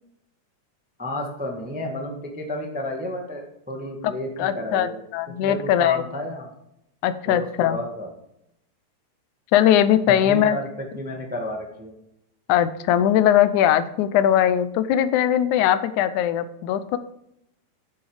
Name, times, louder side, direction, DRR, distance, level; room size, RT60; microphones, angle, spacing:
voice 1, 1.0-5.0 5.4-6.5 7.2-8.1 10.1-10.7 11.0-11.9, left 1 dB, 5° right, 1 dB, 0.7 m, -31 dB
voice 2, 4.4-6.0 7.0-7.8 9.5-10.6 12.5-17.0, left 11 dB, 85° left, 12 dB, 2.1 m, -20 dB
9.7 x 8.2 x 4.9 m, 0.78 s
omnidirectional pair, 3.4 m